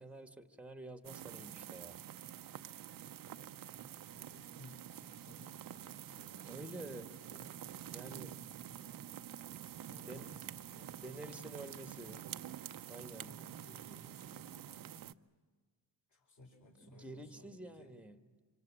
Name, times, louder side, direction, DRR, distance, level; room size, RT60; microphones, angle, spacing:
voice 1, 0.0-2.0 6.5-7.1 7.9-8.4 10.0-10.4 11.0-12.2 12.9-13.3 16.8-18.2, right 1 dB, 5° right, 7 dB, 1.4 m, -49 dB
sound 1, 1.0-15.1, right 11 dB, 50° right, 0.7 m, -48 dB
voice 2, 3.8-7.5 8.6-8.7 9.7-11.9 13.2-15.0 16.1-17.9, left 1 dB, 40° left, 2 dB, 5.0 m, -60 dB
26.5 x 25.5 x 7.5 m, 1.5 s
cardioid pair, 110°, 45 cm